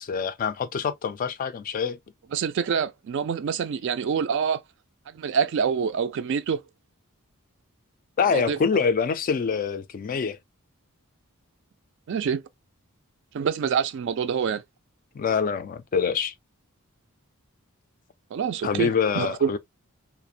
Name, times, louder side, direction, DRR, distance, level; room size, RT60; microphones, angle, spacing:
voice 1, 0.0-2.0 8.2-10.4 15.1-16.3 18.6-19.6, left 6 dB, 40° left, 0.3 m, -25 dB
voice 2, 2.3-4.6 5.1-6.6 8.3-8.6 12.1-12.4 13.3-14.6 18.3-18.9 19.2-19.5, right 6 dB, 55° right, 0.3 m, -26 dB
2.4 x 2.1 x 2.6 m
head